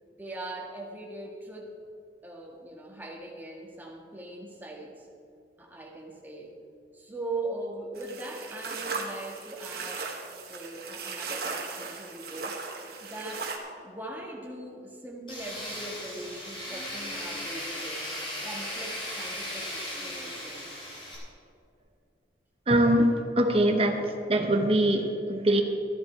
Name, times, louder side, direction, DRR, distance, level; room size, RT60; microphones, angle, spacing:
voice 1, 0.2-1.7 2.2-5.1 5.6-6.5 6.9-10.2 10.5-12.6 13.0-13.5 13.8-18.0 18.4-20.9, right 2 dB, 10° right, -2 dB, 1.8 m, -40 dB
sound 1, 8.0-13.6, right 4 dB, 60° right, 1.5 m, -37 dB
Tools, 15.3-21.2, left 1 dB, 30° left, 3.4 m, -37 dB
voice 2, 22.7-25.6, right 1 dB, 35° right, 5 dB, 1.0 m, -23 dB
13.5 x 11.0 x 4.6 m, 2.5 s
head